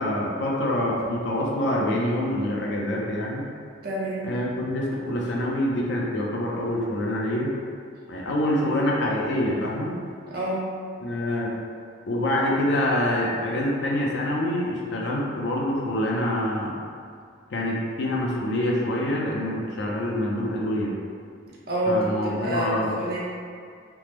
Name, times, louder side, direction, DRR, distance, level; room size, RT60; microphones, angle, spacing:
voice 1, 0.0-3.5 4.2-7.5 8.1-10.0 11.0-11.5 12.1-16.7 17.5-20.9 21.9-22.9, left 1 dB, 60° left, -3 dB, 0.5 m, -26 dB
voice 2, 3.8-4.2 10.3-10.7 21.7-22.1 22.4-23.2, right 1 dB, 50° right, -6 dB, 0.6 m, -27 dB
3.3 x 2.0 x 2.9 m, 2.3 s
head